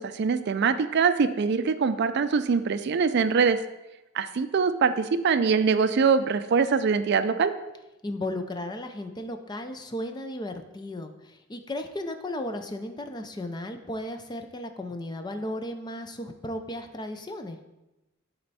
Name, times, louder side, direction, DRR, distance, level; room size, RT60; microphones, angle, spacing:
voice 1, 0.0-3.6 4.1-7.5, right 5 dB, 55° right, 11 dB, 0.4 m, -23 dB
voice 2, 8.0-17.6, left 1 dB, 20° left, 6 dB, 0.5 m, -35 dB
11.0 x 4.4 x 4.1 m, 0.99 s
head